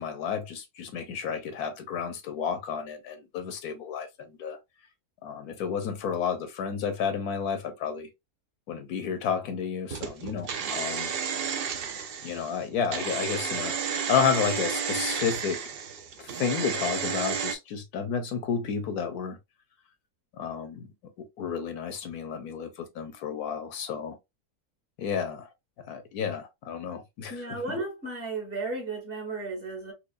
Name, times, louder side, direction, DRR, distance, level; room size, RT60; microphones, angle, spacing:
voice 1, 0.0-4.1 4.4-4.6 5.2-8.1 8.7-11.1 12.2-15.6 16.2-19.4 20.4-20.9 21.4-24.2 25.0-25.5 25.9-27.6, left 7 dB, 75° left, 1.3 m, -31 dB
sound 1, 9.9-17.5, right 7 dB, 65° right, 0.5 m, -32 dB
voice 2, 27.3-29.9, right 3 dB, 35° right, 1.7 m, -34 dB
4.5 x 2.4 x 2.4 m
omnidirectional pair, 1.6 m